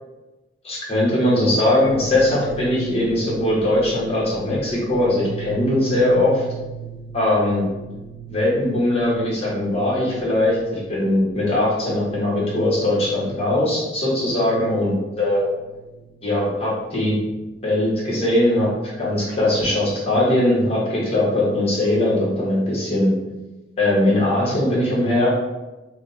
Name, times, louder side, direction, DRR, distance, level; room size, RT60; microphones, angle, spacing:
voice 1, 0.6-6.4 7.1-7.6 8.3-15.5 16.2-17.2 17.6-23.1 23.8-25.3, left 1 dB, 35° left, -6 dB, 1.3 m, -20 dB
sound 1, 1.8-20.1, right 6 dB, 50° right, 0.4 m, -39 dB
3.5 x 2.3 x 4.0 m, 1.1 s
head